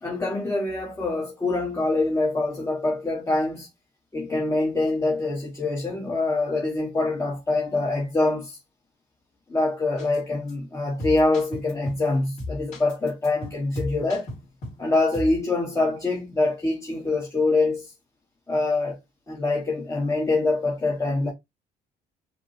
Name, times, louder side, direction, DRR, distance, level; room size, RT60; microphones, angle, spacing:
voice 1, 0.0-3.7 4.1-8.6 9.5-14.3 14.8-17.9 18.5-19.0 19.3-21.3, left 2 dB, 15° left, 1.0 m, -25 dB
sound 1, 10.0-10.2 10.5-10.6 11.0-12.1 12.4-14.8 15.1-15.4, left 1 dB, 45° left, 2.5 m, -35 dB
5.0 x 2.0 x 3.0 m
cardioid pair, 110°, 17 cm